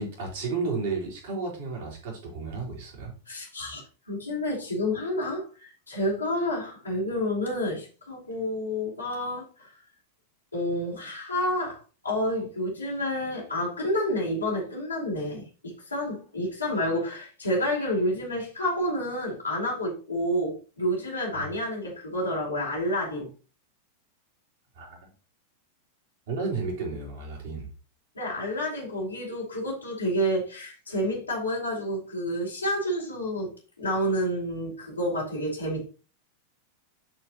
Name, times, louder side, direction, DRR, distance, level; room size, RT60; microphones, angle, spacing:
voice 1, 0.0-3.1 21.3-21.5 24.8-25.1 26.3-27.7, right 4 dB, 55° right, 3.6 m, -32 dB
voice 2, 3.3-9.8 10.5-23.3 28.1-35.9, equal, 80° left, 3.7 m, -29 dB
13.5 x 4.5 x 3.0 m
figure-of-eight pair, 90°, 0 cm